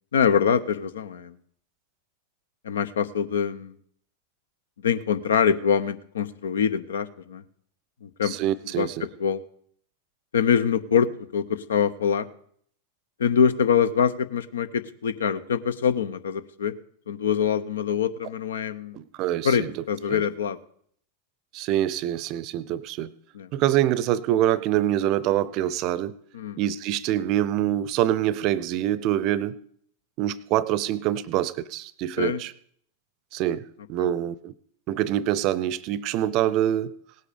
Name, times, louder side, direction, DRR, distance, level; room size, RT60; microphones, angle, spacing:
voice 1, 0.1-1.3 2.6-3.8 4.8-7.4 8.0-8.4 8.7-9.4 10.3-12.3 13.2-16.7 17.1-19.0 19.4-20.6 23.3-23.5 26.3-26.6 32.2-32.4 34.0-34.1, left 7 dB, 65° left, 14 dB, 0.9 m, -24 dB
voice 2, 8.3-9.1 18.9-19.7 20.1-20.2 21.5-23.1 23.5-26.1 26.6-29.6 30.2-32.5 33.3-33.6 33.9-34.5 34.9-36.9, right 12 dB, 40° right, 20 dB, 0.6 m, -25 dB
18.0 x 8.5 x 5.1 m, 0.64 s
figure-of-eight pair, 90°, 0 cm